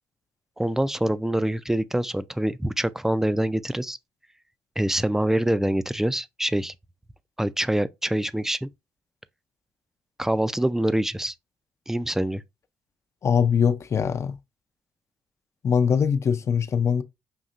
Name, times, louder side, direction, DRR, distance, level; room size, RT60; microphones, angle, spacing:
voice 1, 0.6-4.0 4.8-6.7 7.4-8.7 10.2-11.3 11.9-12.4, right 1 dB, 5° right, 0.4 m, -25 dB
voice 2, 13.2-14.4 15.6-17.0, left 7 dB, 45° left, 0.5 m, -22 dB
5.5 x 2.8 x 2.5 m
supercardioid pair, 65°, 7 cm